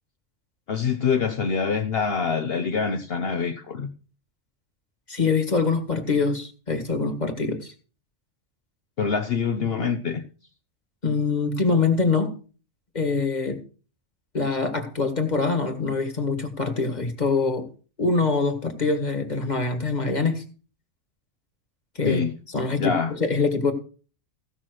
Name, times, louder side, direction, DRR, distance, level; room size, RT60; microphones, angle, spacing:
voice 1, 0.7-3.9 9.0-10.2 22.0-22.4 22.8-23.1, left 5 dB, 55° left, 7 dB, 1.0 m, -25 dB
voice 2, 5.1-7.7 11.0-12.3 12.9-13.6 14.3-17.7 18.0-20.4 22.0-22.2 22.5-23.7, left 4 dB, 35° left, 6 dB, 2.0 m, -24 dB
16.0 x 6.0 x 6.3 m, 0.39 s
omnidirectional pair, 1.2 m